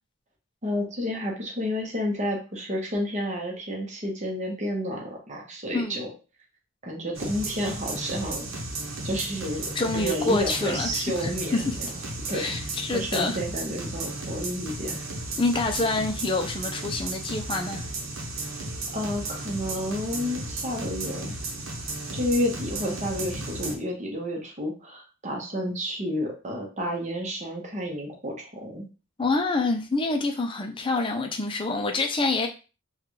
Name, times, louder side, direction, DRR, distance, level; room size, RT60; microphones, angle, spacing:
voice 1, 0.6-6.1 6.8-8.5 9.0-11.9 12.3-12.5 12.9-15.0 18.9-21.3 22.1-28.9, equal, 35° right, 0.9 m, -30 dB
sound 1, 7.1-23.8, right 2 dB, 75° right, 0.9 m, -34 dB
voice 2, 9.8-11.8 12.3-13.4 15.4-17.8 29.2-32.5, left 3 dB, 25° left, 0.4 m, -27 dB
3.7 x 2.3 x 3.1 m
head